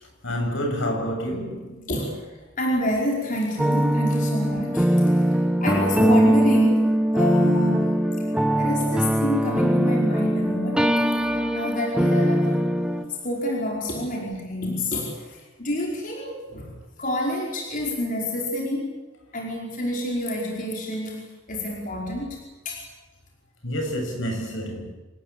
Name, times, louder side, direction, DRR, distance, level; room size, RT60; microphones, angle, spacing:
voice 1, 0.2-1.9 23.6-24.9, equal, 70° left, 7.8 m, -28 dB
voice 2, 2.6-5.3 5.6-8.0 8.6-10.9 11.2-11.3 11.5-12.6 13.2-16.7 17.0-18.9 19.3-22.4 22.7-22.8, left 1 dB, 45° left, 5.3 m, -28 dB
sound 1, 3.6-13.0, equal, 5° right, 1.4 m, -21 dB
27.0 x 20.5 x 8.6 m
head